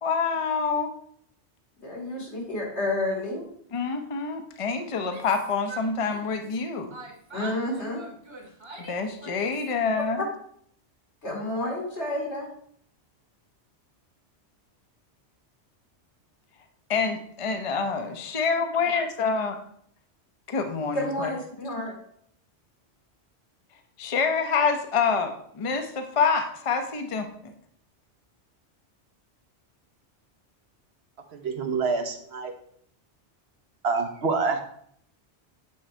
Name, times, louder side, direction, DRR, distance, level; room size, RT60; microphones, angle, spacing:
voice 1, 0.0-0.9 3.7-7.0 8.9-10.2 16.9-19.6 20.5-21.3 24.0-27.5, left 5 dB, 35° left, 6 dB, 0.7 m, -27 dB
voice 2, 1.8-3.4 7.3-8.0 10.2-10.3 11.2-12.5 20.9-21.9, left 1 dB, 80° left, -2 dB, 2.9 m, -30 dB
Yell, 4.9-6.6 6.9-9.7, right 3 dB, 25° right, 1.1 m, -44 dB
voice 3, 31.3-32.5 33.8-34.6, right 4 dB, 70° right, 5 dB, 1.1 m, -26 dB
8.5 x 3.9 x 4.4 m, 0.64 s
omnidirectional pair, 1.1 m